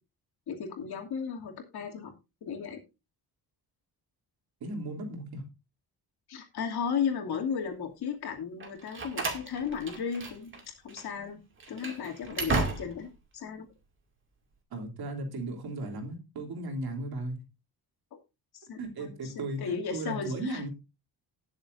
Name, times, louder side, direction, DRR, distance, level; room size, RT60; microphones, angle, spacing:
voice 1, 0.5-2.1 2.4-2.8 6.3-10.5 10.8-11.4 11.7-13.7 18.5-20.7, left 6 dB, 80° left, 3 dB, 2.7 m, -35 dB
voice 2, 4.6-5.4 14.7-17.4 18.8-20.7, right 2 dB, 75° right, 2 dB, 3.1 m, -36 dB
Slam, 8.6-10.6 10.9-11.1 11.6-13.2, right 3 dB, 30° right, 2.4 m, -34 dB
19.0 x 7.1 x 2.6 m, 0.27 s
wide cardioid pair, 155°, 38 cm